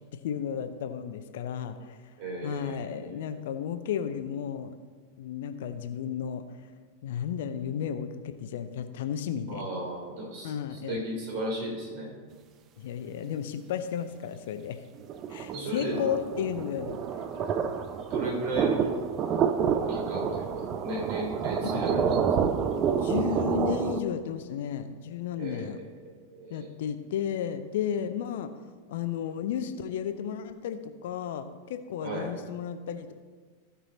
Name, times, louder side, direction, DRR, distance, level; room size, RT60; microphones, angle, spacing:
voice 1, 0.2-2.0 2.4-4.7 5.2-6.4 7.0-9.7 10.4-11.0 12.8-14.8 15.3-17.0 21.6-22.3 23.0-25.8 26.5-28.5 28.9-33.1, left 8 dB, 55° left, 10 dB, 0.6 m, -33 dB
voice 2, 2.2-3.4 9.5-12.1 15.5-16.0 18.1-19.0 19.9-22.2 25.4-26.7 32.0-32.3, right 1 dB, 45° right, -2 dB, 3.2 m, -36 dB
sound 1, 15.0-24.0, right 7 dB, 30° right, 0.6 m, -28 dB
15.0 x 5.6 x 4.1 m, 1.5 s
figure-of-eight pair, 90°, 0 cm